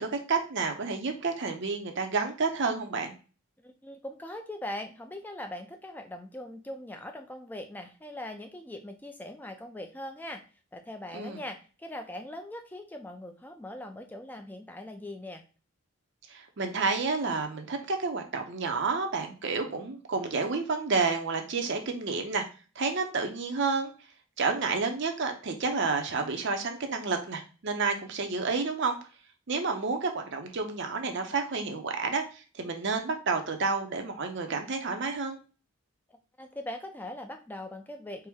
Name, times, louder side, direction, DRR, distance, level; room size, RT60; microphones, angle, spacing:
voice 1, 0.0-3.1 11.1-11.4 16.3-22.4 22.8-23.9 24.4-29.0 29.5-35.4, right 4 dB, 55° right, 4 dB, 0.6 m, -30 dB
voice 2, 3.6-10.4 10.7-15.4 36.1-38.3, left 1 dB, 10° left, 5 dB, 0.4 m, -41 dB
4.4 x 2.1 x 3.5 m, 0.35 s
head